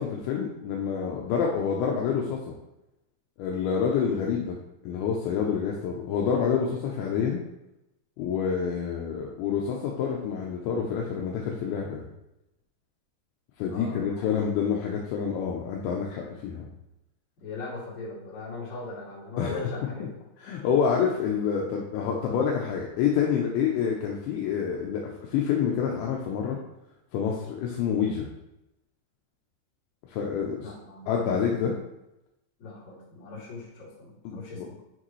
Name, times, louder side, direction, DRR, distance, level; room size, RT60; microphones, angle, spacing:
voice 1, 0.0-2.4 3.4-4.6 4.8-7.4 8.2-12.0 13.6-16.7 19.4-19.7 20.0-20.1 20.4-26.6 27.1-28.3 30.1-30.7 31.1-31.8 34.3-34.7, left 7 dB, 80° left, -1 dB, 2.9 m, -27 dB
voice 2, 13.7-14.3 17.4-20.2 30.6-31.2 32.6-34.8, left 3 dB, 45° left, -8 dB, 3.4 m, -40 dB
7.4 x 6.3 x 3.1 m, 0.90 s
omnidirectional pair, 5.4 m